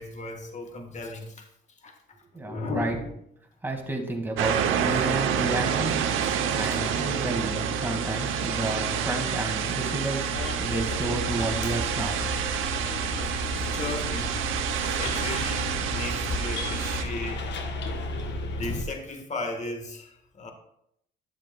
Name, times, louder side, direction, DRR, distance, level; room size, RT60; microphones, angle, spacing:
voice 1, 0.0-1.5 1.8-1.9 2.4-3.1 6.6-6.8 12.8-13.0 13.6-14.4 14.9-17.5 18.6-20.5, left 2 dB, 35° left, 4 dB, 1.4 m, -35 dB
voice 2, 2.3-3.0 3.6-6.0 6.5-12.2, right 2 dB, 10° right, 1 dB, 2.0 m, -31 dB
sound 1, 4.4-17.0, right 7 dB, 85° right, 0.8 m, -28 dB
Bus, 10.3-18.8, left 1 dB, 60° left, 1.1 m, -34 dB
11.0 x 7.4 x 2.3 m, 0.73 s
cardioid pair, 90°, 20 cm